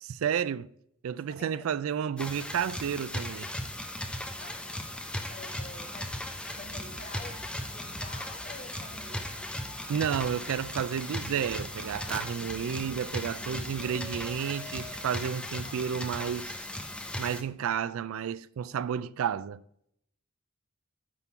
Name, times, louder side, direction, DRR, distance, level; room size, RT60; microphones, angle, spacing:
voice 1, 0.0-0.7 1.0-3.5 9.9-16.7 17.2-19.6, right 8 dB, 70° right, 0.3 m, -31 dB
voice 2, 1.3-1.7 4.4-4.6 5.3-9.5 15.6-15.8, left 3 dB, 40° left, 1.2 m, -49 dB
sound 1, 2.2-17.4, left 1 dB, 5° left, 0.7 m, -37 dB
sound 2, 5.9-15.4, right 1 dB, 25° right, 1.5 m, -50 dB
9.8 x 3.7 x 5.9 m
head